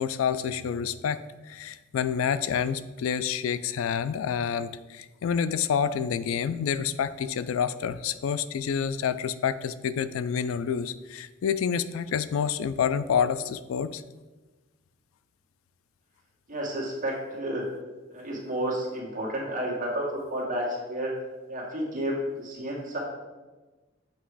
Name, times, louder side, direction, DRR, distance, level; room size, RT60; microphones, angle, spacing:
voice 1, 0.0-14.0, left 7 dB, 85° left, 14 dB, 0.3 m, -28 dB
voice 2, 16.5-17.6 18.1-21.1 21.5-23.0, right 1 dB, 40° right, -3 dB, 1.6 m, -31 dB
8.0 x 3.1 x 4.8 m, 1.2 s
head